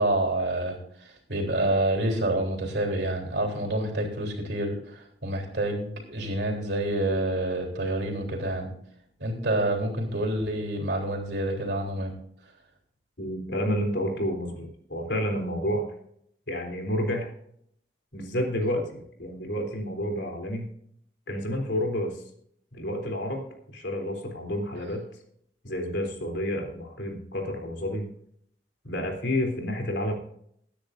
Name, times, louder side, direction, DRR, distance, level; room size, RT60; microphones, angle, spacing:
voice 1, 0.0-8.7 9.2-12.1, right 1 dB, 75° right, 1 dB, 3.5 m, -28 dB
voice 2, 13.2-15.9 16.5-17.3 18.1-20.7 21.3-22.2 22.7-25.0 25.6-28.0 28.8-30.1, equal, 90° left, 3 dB, 3.5 m, -30 dB
21.5 x 10.0 x 2.6 m, 0.68 s
head